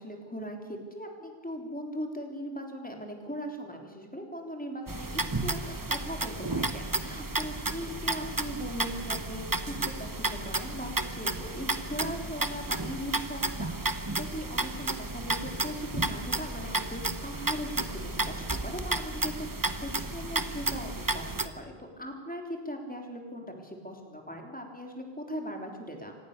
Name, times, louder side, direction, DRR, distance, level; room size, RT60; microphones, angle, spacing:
voice 1, 0.0-26.2, equal, 10° left, 2 dB, 3.6 m, -39 dB
sound 1, 4.9-21.5, right 2 dB, 20° right, 1.0 m, -32 dB
25.5 x 19.5 x 6.8 m, 1.5 s
omnidirectional pair, 1.1 m